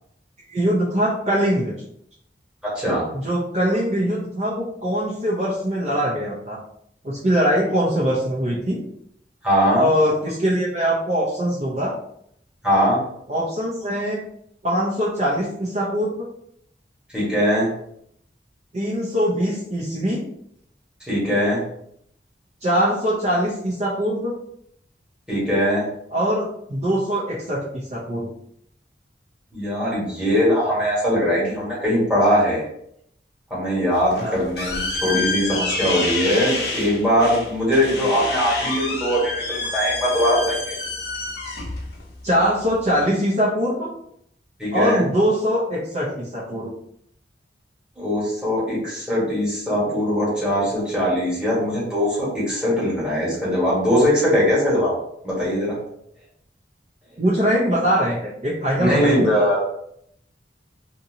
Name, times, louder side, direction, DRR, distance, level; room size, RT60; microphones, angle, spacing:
voice 1, 0.5-1.7 3.1-6.6 7.0-8.8 9.8-11.9 13.3-14.2 14.6-16.3 18.7-20.2 22.6-24.3 26.1-28.3 34.2-34.4 42.2-43.9 44.7-46.7 57.2-59.3, equal, 40° right, -6 dB, 0.6 m, -22 dB
voice 2, 2.6-3.0 9.4-9.8 12.6-13.0 17.1-17.7 21.1-21.6 25.3-25.8 29.5-32.6 33.5-40.8 44.6-45.0 48.0-54.9 55.2-55.8 58.8-59.6, equal, 5° right, -7 dB, 1.3 m, -21 dB
sound 1, 33.9-43.0, left 3 dB, 65° left, 0.7 m, -28 dB
2.7 x 2.7 x 2.7 m, 0.71 s
head